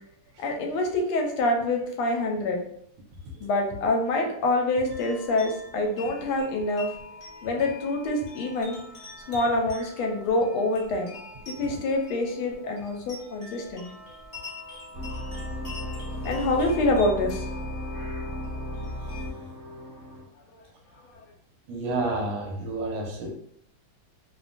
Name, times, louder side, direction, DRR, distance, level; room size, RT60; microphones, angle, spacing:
voice 1, 0.4-2.6 3.4-6.9 7.4-8.8 9.3-11.1 11.5-13.9 15.8-17.5, left 2 dB, 85° left, 2 dB, 1.5 m, -26 dB
sound 1, 4.9-19.2, left 3 dB, 55° left, 0.4 m, -44 dB
sound 2, 14.9-20.2, left 1 dB, 15° right, 0.8 m, -35 dB
voice 2, 17.9-18.3 21.7-23.3, right 2 dB, 80° right, 0 dB, 1.4 m, -31 dB
3.3 x 2.2 x 2.5 m, 0.69 s
omnidirectional pair, 2.3 m